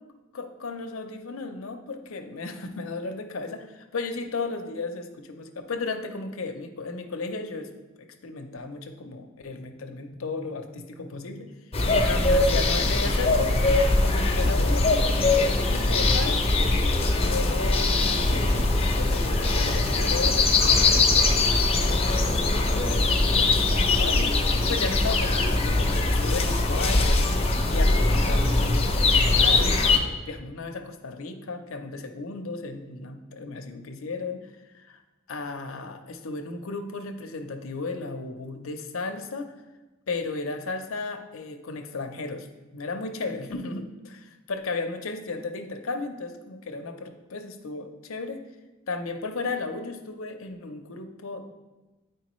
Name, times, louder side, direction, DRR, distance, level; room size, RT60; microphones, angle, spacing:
voice 1, 0.3-7.7 8.0-11.5 11.9-13.6 14.0-16.5 17.1-18.6 19.0-21.2 21.5-23.1 23.3-27.2 27.6-28.7 29.1-35.0 35.3-39.5 40.1-42.5 42.7-44.2 44.5-48.4 48.9-51.5, left 3 dB, 90° left, 6 dB, 0.7 m, -35 dB
sound 1, 11.7-30.0, left 2 dB, 30° left, 0.7 m, -22 dB
9.2 x 4.6 x 3.1 m, 1.1 s
head